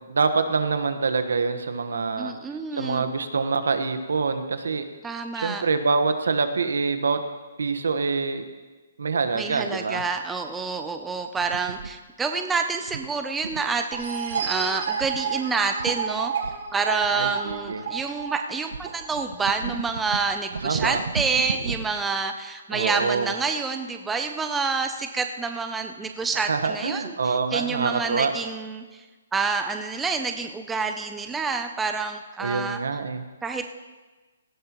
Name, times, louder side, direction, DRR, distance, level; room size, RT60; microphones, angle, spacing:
voice 1, 0.0-2.3 2.7-4.8 5.3-7.2 7.6-8.4 9.0-10.0 17.1-17.8 20.6-21.0 22.7-23.3 26.4-28.3 32.4-33.2, right 4 dB, 90° right, 9 dB, 1.2 m, -25 dB
voice 2, 2.2-3.1 5.0-5.6 9.3-16.3 16.7-29.0 29.3-32.8 33.4-33.7, right 4 dB, 5° right, 6 dB, 0.4 m, -28 dB
sound 1, 11.4-11.9 12.9-13.8 14.3-14.6 15.0-15.2 15.5-15.6 15.8-16.0 16.4-18.2 18.7-22.0, right 5 dB, 70° right, 0.8 m, -34 dB
sound 2, 13.9-19.4, right 6 dB, 50° right, 2.0 m, -31 dB
17.5 x 15.0 x 3.0 m, 1.3 s
hypercardioid pair, 180°, 0 cm